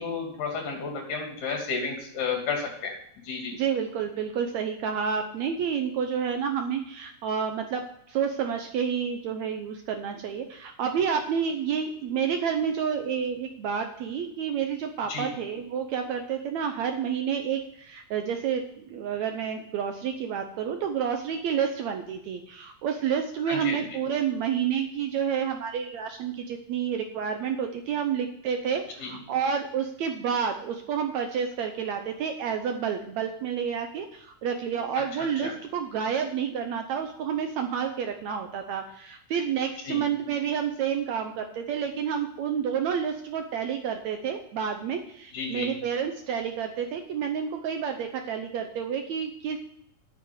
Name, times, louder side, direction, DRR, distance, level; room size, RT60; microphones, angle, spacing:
voice 1, 0.0-2.9 3.2-3.5 15.1-15.3 23.5-23.8 29.0-29.2 35.2-35.5 39.9-40.0 45.3-45.7, left 4 dB, 60° left, 1 dB, 4.0 m, -32 dB
voice 2, 3.5-49.6, right 7 dB, 80° right, 5 dB, 1.6 m, -29 dB
9.3 x 7.0 x 7.8 m, 0.69 s
omnidirectional pair, 4.2 m